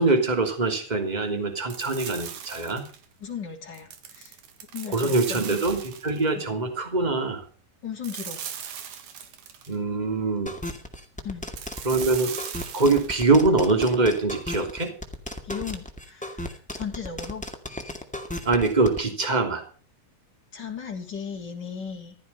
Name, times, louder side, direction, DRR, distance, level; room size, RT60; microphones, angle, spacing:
voice 1, 0.0-2.8 4.9-7.4 9.7-10.5 11.8-12.3 12.7-14.9 18.4-19.6, right 3 dB, 15° right, 6 dB, 2.6 m, -23 dB
sound 1, 1.7-3.1 3.7-6.3 8.0-9.8 11.6-13.3, right 8 dB, 70° right, 3.1 m, -38 dB
voice 2, 3.2-4.4 4.7-5.9 6.3-6.4 7.8-8.4 11.2-11.4 15.4-17.4 20.5-22.2, left 7 dB, 30° left, 2 dB, 3.4 m, -36 dB
sound 2, 10.5-19.0, left 1 dB, 5° left, 1.2 m, -35 dB
15.5 x 12.5 x 5.6 m, 0.38 s
omnidirectional pair, 3.8 m